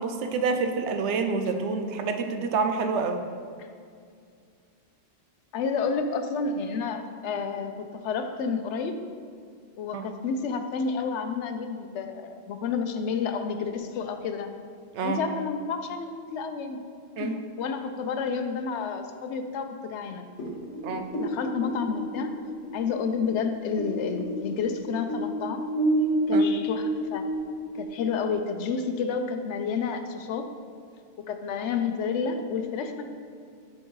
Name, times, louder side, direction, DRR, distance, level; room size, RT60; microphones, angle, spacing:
voice 1, 0.0-3.2 9.9-10.0 14.9-15.2 17.2-17.4 20.8-21.1 26.3-26.4, right 4 dB, 80° right, 6 dB, 0.9 m, -27 dB
voice 2, 5.5-9.0 9.8-14.5 15.0-16.8 17.2-20.3 21.2-22.3 22.7-25.6 26.3-27.2 27.7-30.5 31.3-33.0, left 5 dB, 85° left, 7 dB, 0.9 m, -30 dB
sound 1, 20.4-23.9 24.2-28.3, right 1 dB, 65° left, 1.6 m, -28 dB
10.5 x 4.4 x 3.1 m, 2.2 s
omnidirectional pair, 1.2 m